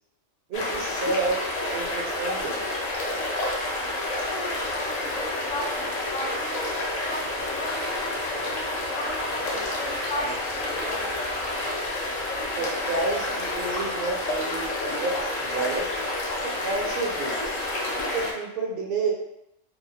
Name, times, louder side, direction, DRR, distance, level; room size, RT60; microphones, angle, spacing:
sound 1, 0.5-18.3, left 1 dB, 60° left, 0.4 m, -29 dB
voice 1, 0.5-1.4 1.7-2.7 12.5-15.9 16.4-17.4 18.1-19.1, right 3 dB, 55° right, 0 dB, 0.6 m, -30 dB
voice 2, 4.2-8.0 8.4-11.3, left 1 dB, 85° left, 0 dB, 1.0 m, -37 dB
2.8 x 2.0 x 2.7 m, 0.83 s
omnidirectional pair, 1.3 m